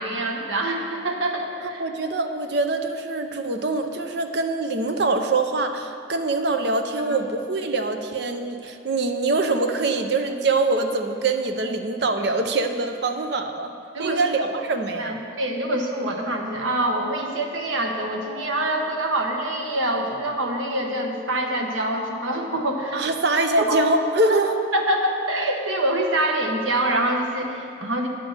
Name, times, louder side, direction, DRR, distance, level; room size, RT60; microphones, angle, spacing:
voice 1, 0.0-1.8 7.1-7.2 13.9-14.2 14.5-14.6 15.0-23.0 23.6-23.8 24.3-24.4 24.7-28.1, right 1 dB, 85° right, 2 dB, 1.1 m, -25 dB
voice 2, 1.6-13.7 14.0-15.2 22.9-24.5, right 3 dB, 55° right, 6 dB, 0.6 m, -24 dB
9.0 x 6.2 x 6.5 m, 2.5 s
head